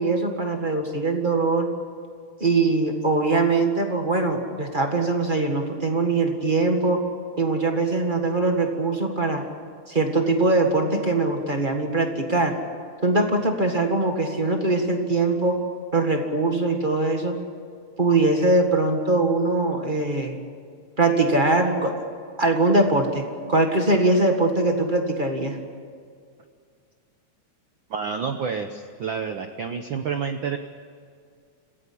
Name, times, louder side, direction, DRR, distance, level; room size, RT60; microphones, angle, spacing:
voice 1, 0.0-1.7 2.4-7.0 7.4-9.4 9.9-12.6 13.0-15.6 15.9-17.4 18.0-20.4 21.0-21.9 22.4-25.6, right 2 dB, 25° right, 4 dB, 1.3 m, -22 dB
voice 2, 27.9-30.6, right 6 dB, 75° right, 7 dB, 1.1 m, -29 dB
26.5 x 16.0 x 8.6 m, 2.2 s
omnidirectional pair, 3.4 m